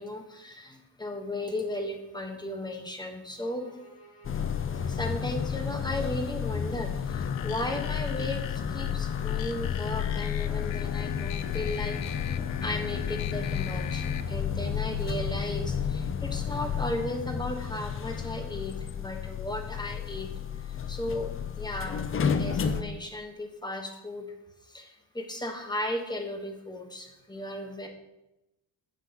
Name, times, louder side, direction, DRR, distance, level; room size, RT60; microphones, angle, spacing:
voice 1, 0.0-3.8 4.8-12.2 12.6-20.3 20.6-22.0 22.3-24.3 24.6-27.9, left 1 dB, 10° left, 4 dB, 1.1 m, -35 dB
sound 1, 3.2-8.1, right 2 dB, 50° left, 2.4 m, -56 dB
sound 2, 4.2-22.8, left 7 dB, 30° left, 0.5 m, -31 dB
sound 3, 7.1-14.2, left 8 dB, 90° left, 0.7 m, -40 dB
9.1 x 7.2 x 2.9 m, 0.93 s
cardioid pair, 100°, 45 cm